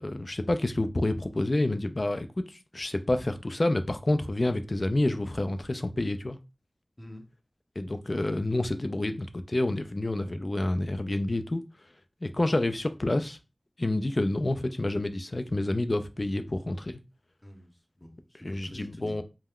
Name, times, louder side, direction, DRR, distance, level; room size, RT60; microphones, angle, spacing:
voice 1, 0.0-6.4 7.8-11.7 12.2-13.4 13.8-17.0 18.4-19.2, left 1 dB, 50° left, 0.3 m, -28 dB
voice 2, 7.0-7.3 17.4-19.2, equal, 20° left, 0.8 m, -47 dB
2.2 x 2.1 x 3.5 m
wide cardioid pair, 50°, 0 cm